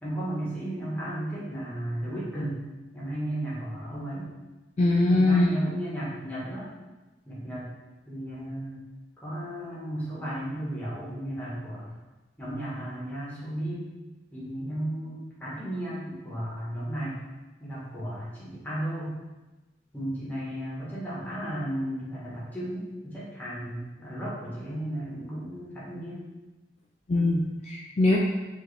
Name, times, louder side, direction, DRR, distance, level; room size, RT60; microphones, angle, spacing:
voice 1, 0.0-2.6 2.9-4.3 5.1-6.7 7.2-7.7 8.1-8.8 9.2-11.9 12.4-13.9 14.3-17.2 17.6-19.1 19.9-26.2, right 1 dB, 10° left, -8 dB, 1.2 m, -34 dB
voice 2, 4.8-5.5 27.1-28.2, left 2 dB, 35° left, -3 dB, 0.3 m, -22 dB
4.5 x 2.7 x 3.3 m, 1.1 s
head